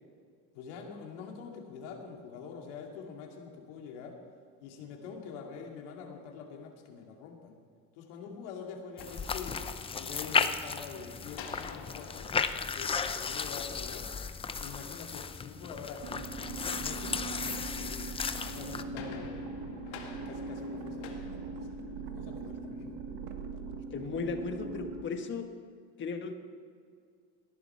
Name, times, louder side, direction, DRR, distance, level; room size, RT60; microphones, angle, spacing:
voice 1, 0.5-4.2 4.6-7.6 8.0-9.6 9.9-14.1 14.6-16.3 16.7-18.1 18.5-19.5 19.9-22.8, left 6 dB, 85° left, 2 dB, 2.5 m, -45 dB
sound 1, 8.8-10.0 11.3-13.8 18.2-22.3, left 6 dB, 70° left, 2.0 m, -49 dB
sound 2, 9.0-18.8, left 5 dB, 15° left, 0.6 m, -35 dB
sound 3, 16.0-25.0, right 4 dB, 80° right, 1.4 m, -41 dB
voice 2, 23.9-25.5 26.0-26.3, left 4 dB, 35° left, 6 dB, 1.5 m, -36 dB
17.5 x 11.0 x 4.5 m, 2.2 s
cardioid pair, 125°, 34 cm